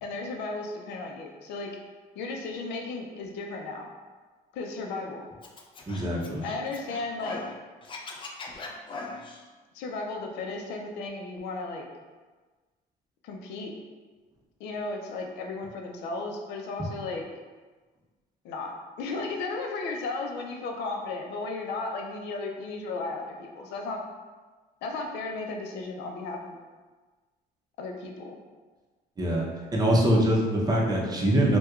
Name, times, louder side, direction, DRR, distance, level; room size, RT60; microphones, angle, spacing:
voice 1, 0.0-1.7 2.2-3.9 4.5-5.3 6.4-7.4 9.7-11.9 13.2-13.8 14.6-17.2 18.4-24.0 24.8-26.6 27.8-28.4, left 3 dB, 85° left, 2 dB, 0.5 m, -35 dB
Scratching (performance technique), 5.4-7.5 7.8-9.4, left 3 dB, 30° left, 0.4 m, -40 dB
voice 2, 5.9-6.4 29.2-29.5 29.7-31.6, right 1 dB, 25° right, -2 dB, 0.7 m, -23 dB
4.3 x 2.2 x 2.3 m, 1.3 s
cardioid pair, 110°, 17 cm